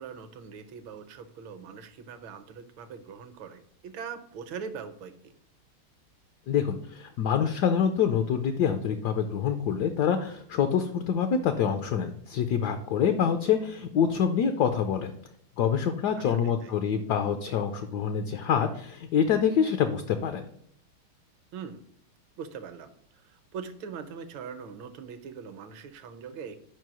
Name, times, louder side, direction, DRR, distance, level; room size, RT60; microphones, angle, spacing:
voice 1, 0.0-5.3 16.1-16.7 21.5-21.8 22.4-26.6, right 6 dB, 75° right, 10 dB, 1.5 m, -42 dB
voice 2, 6.5-15.1 15.6-20.4, left 7 dB, 75° left, 7 dB, 0.9 m, -26 dB
5.2 x 4.6 x 6.1 m, 0.67 s
omnidirectional pair, 2.3 m